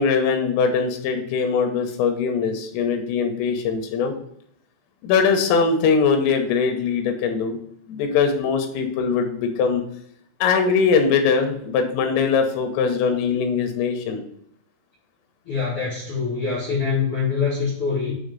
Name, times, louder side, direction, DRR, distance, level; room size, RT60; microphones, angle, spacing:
voice 1, 0.0-4.1 5.0-7.6 7.9-9.8 10.4-14.2, left 5 dB, 85° left, 5 dB, 3.6 m, -21 dB
voice 2, 15.4-18.1, left 5 dB, 70° left, -5 dB, 1.3 m, -24 dB
8.7 x 3.3 x 5.3 m, 0.70 s
omnidirectional pair, 5.9 m